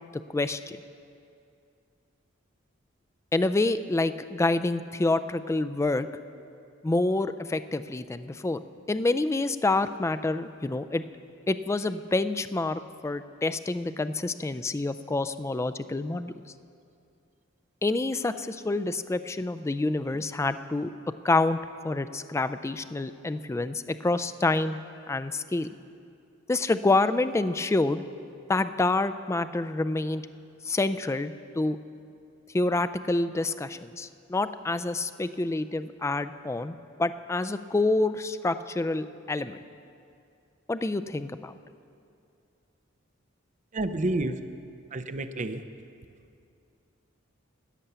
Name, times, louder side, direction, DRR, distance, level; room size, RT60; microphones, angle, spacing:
voice 1, 0.3-0.8 3.3-6.1 6.8-8.6 8.9-11.0 11.5-16.3 17.8-20.9 21.2-21.6 21.8-24.8 25.1-25.7 26.5-28.0 28.5-30.2 30.6-31.8 32.5-39.6 40.7-41.6, left 2 dB, 15° left, 12 dB, 0.3 m, -27 dB
voice 2, 43.7-44.4 44.9-45.6, right 2 dB, 40° right, 10 dB, 0.5 m, -29 dB
13.5 x 8.5 x 6.8 m, 2.4 s
head